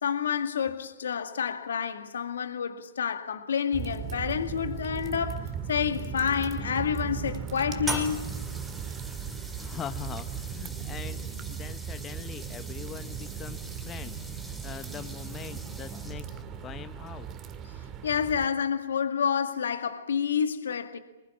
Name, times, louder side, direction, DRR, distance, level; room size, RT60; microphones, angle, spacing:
voice 1, 0.0-8.2 18.0-21.0, left 7 dB, 75° left, 2.0 m, -29 dB
sound 1, 3.7-18.5, right 7 dB, 30° right, 2.0 m, -37 dB
sound 2, 7.8-16.4, right 2 dB, 5° right, 3.9 m, -42 dB
voice 2, 9.5-17.3, left 9 dB, 20° left, 0.8 m, -42 dB
23.5 x 21.0 x 9.6 m
hypercardioid pair, 130°, 0 cm